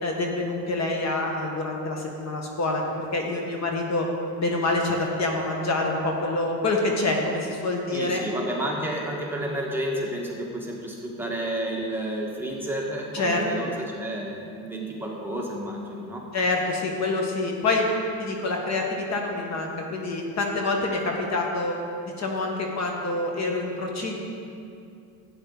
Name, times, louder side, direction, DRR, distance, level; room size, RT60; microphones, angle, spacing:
voice 1, 0.0-4.1 4.4-8.2 13.1-13.7 16.3-17.9 18.2-21.8 22.2-24.2, left 2 dB, 35° left, 1 dB, 1.6 m, -26 dB
voice 2, 7.9-16.2, right 1 dB, 5° right, -3 dB, 1.6 m, -31 dB
12.0 x 9.0 x 4.0 m, 2.5 s
supercardioid pair, 105°, 44 cm